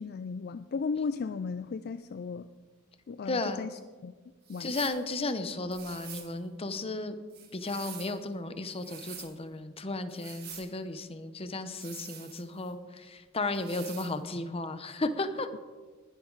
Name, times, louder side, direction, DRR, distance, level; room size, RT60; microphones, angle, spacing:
voice 1, 0.0-2.5 3.1-4.1 4.5-4.7, left 5 dB, 45° left, 12 dB, 0.3 m, -35 dB
voice 2, 3.2-3.7 4.6-7.2 7.5-15.5, left 2 dB, 25° left, 10 dB, 0.9 m, -34 dB
sound 1, 4.5-5.0 5.7-6.3 7.3-8.2 8.7-9.3 10.1-10.7 11.7-12.7 13.5-14.1, right 9 dB, 50° right, 1.8 m, -47 dB
20.0 x 11.0 x 4.0 m, 1.4 s
head